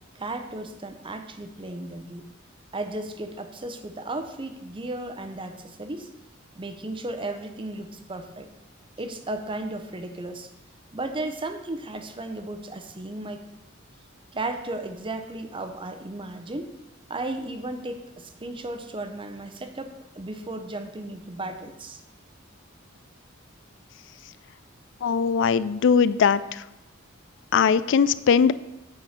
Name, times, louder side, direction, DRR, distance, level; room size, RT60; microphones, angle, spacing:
voice 1, 0.1-2.3 2.7-6.1 6.5-8.5 9.0-10.5 10.9-13.4 14.3-16.7 17.1-22.0, right 2 dB, 25° right, 7 dB, 0.7 m, -35 dB
voice 2, 25.0-26.4 27.5-28.5, left 6 dB, 60° left, 16 dB, 0.3 m, -20 dB
9.2 x 4.3 x 6.4 m, 0.96 s
head